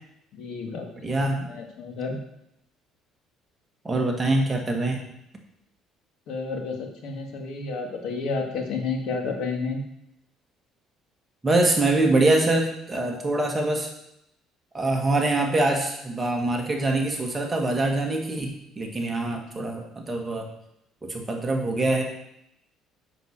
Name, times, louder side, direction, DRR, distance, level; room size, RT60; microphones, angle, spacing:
voice 1, 0.3-2.2 6.3-9.8 19.3-19.7, left 4 dB, 65° left, 3 dB, 2.1 m, -31 dB
voice 2, 1.0-1.4 3.8-5.0 11.4-13.9 14.7-20.5 21.0-22.0, right 2 dB, 15° right, 1 dB, 1.7 m, -24 dB
7.6 x 6.4 x 7.3 m, 0.77 s
cardioid pair, 140°, 0 cm